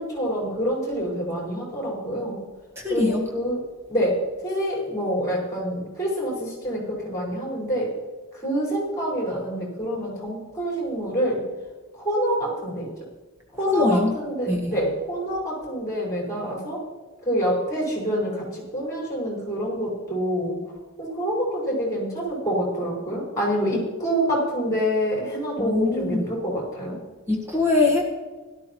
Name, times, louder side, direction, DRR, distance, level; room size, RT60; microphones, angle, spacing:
voice 1, 0.0-2.4 2.9-3.6 3.9-7.9 8.3-11.4 11.9-12.9 13.6-16.8 17.2-20.6 21.0-27.0, equal, 15° left, -5 dB, 4.9 m, -26 dB
voice 2, 2.8-3.2 13.7-14.1 14.5-14.7 25.6-26.3 27.3-28.0, left 2 dB, 10° right, 0 dB, 1.4 m, -22 dB
17.5 x 12.0 x 3.0 m, 1.3 s
head